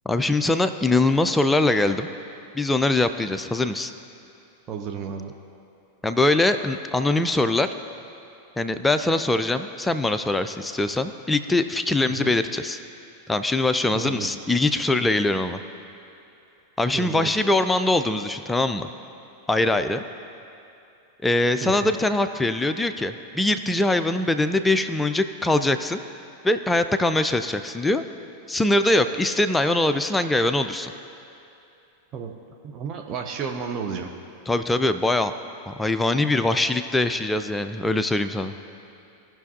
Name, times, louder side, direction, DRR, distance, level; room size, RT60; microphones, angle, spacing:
voice 1, 0.1-2.1 2.5-3.9 6.0-7.7 8.6-12.8 13.3-15.6 16.8-18.9 19.5-20.0 21.2-26.0 26.4-28.0 28.5-30.9 34.5-35.3 35.7-38.5, left 2 dB, 10° left, 10 dB, 0.4 m, -22 dB
voice 2, 4.7-5.3 12.0-12.3 13.9-14.3 16.9-17.5 21.6-21.9 32.1-32.3 32.6-34.1, right 6 dB, 30° right, 2 dB, 0.6 m, -32 dB
17.5 x 5.9 x 2.8 m, 2.8 s
figure-of-eight pair, 90°, 0 cm